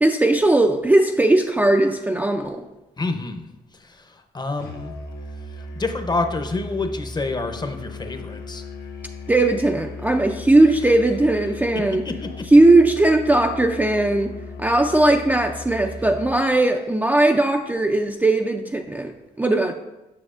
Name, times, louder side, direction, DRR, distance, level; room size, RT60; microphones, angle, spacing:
voice 1, 0.0-2.6 9.3-12.0 12.5-19.7, right 2 dB, 10° right, 3 dB, 0.4 m, -18 dB
voice 2, 3.0-3.5 3.8-4.9 5.5-8.6 12.0-12.4, left 3 dB, 25° left, 7 dB, 0.7 m, -28 dB
Musical instrument, 4.6-16.4, left 3 dB, 70° left, 0.9 m, -37 dB
7.6 x 6.0 x 2.4 m, 1.0 s
cardioid pair, 70°, 17 cm